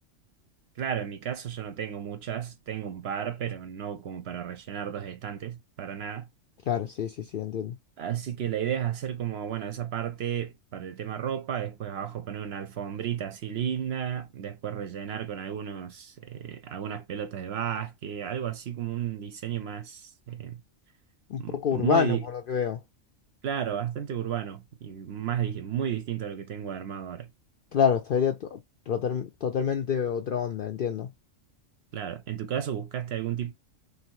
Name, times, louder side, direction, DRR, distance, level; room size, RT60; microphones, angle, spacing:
voice 1, 0.8-6.3 8.0-20.6 21.4-22.2 23.4-27.3 31.9-33.5, right 9 dB, 60° right, 0.7 m, -33 dB
voice 2, 6.7-7.8 21.3-22.8 27.7-28.6 28.9-31.1, left 7 dB, 65° left, 0.5 m, -27 dB
3.2 x 2.7 x 4.5 m
omnidirectional pair, 1.3 m